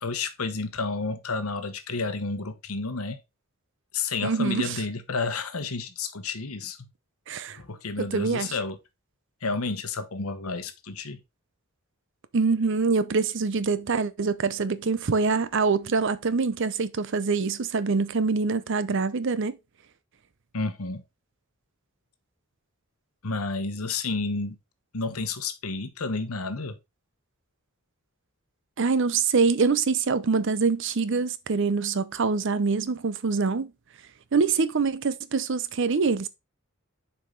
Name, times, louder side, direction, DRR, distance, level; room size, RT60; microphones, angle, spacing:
voice 1, 0.0-3.2 3.9-6.9 7.5-8.8 9.4-11.2 20.5-21.0 23.2-24.6 24.9-26.8, left 3 dB, 90° left, 1.1 m, -31 dB
voice 2, 4.2-4.8 7.3-7.6 8.0-8.5 12.3-19.6 28.8-33.7 34.3-36.3, right 4 dB, 60° right, 0.6 m, -25 dB
7.0 x 4.8 x 3.8 m
head